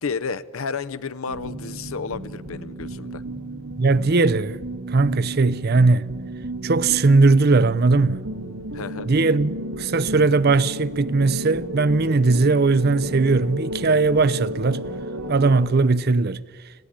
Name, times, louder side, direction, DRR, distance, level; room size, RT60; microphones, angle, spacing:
voice 1, 0.0-3.2 8.7-9.1, left 5 dB, 70° left, 0.7 m, -31 dB
sound 1, 1.3-15.7, right 1 dB, 80° right, 2.4 m, -33 dB
voice 2, 3.8-4.6 4.9-6.2 6.6-8.2 9.1-14.9 15.3-16.4, right 3 dB, 45° right, 0.5 m, -19 dB
18.5 x 14.5 x 9.9 m
head